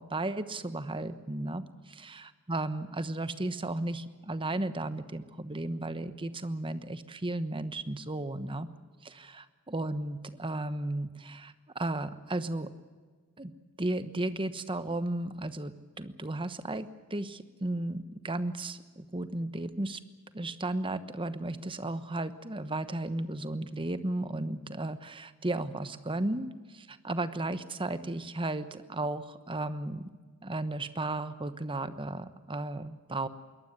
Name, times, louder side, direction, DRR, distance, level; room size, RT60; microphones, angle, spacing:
voice 1, 0.0-1.6 2.5-8.7 9.0-9.2 9.7-12.7 13.4-13.5 13.8-20.0 20.3-30.1 30.4-33.3, right 2 dB, 25° right, 12 dB, 1.1 m, -34 dB
22.5 x 18.5 x 8.1 m, 1.5 s
head